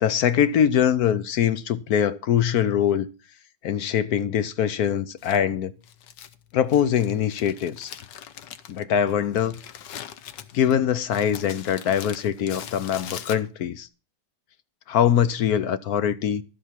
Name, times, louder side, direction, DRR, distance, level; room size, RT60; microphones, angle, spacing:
voice 1, 0.0-3.1 3.6-5.7 6.5-7.9 8.7-9.6 10.5-13.9 14.9-16.4, left 9 dB, 65° left, 1.1 m, -23 dB
Crumpling crinkling, 5.2-13.8, left 10 dB, 85° left, 1.5 m, -42 dB
12.0 x 7.7 x 5.8 m
omnidirectional pair, 1.9 m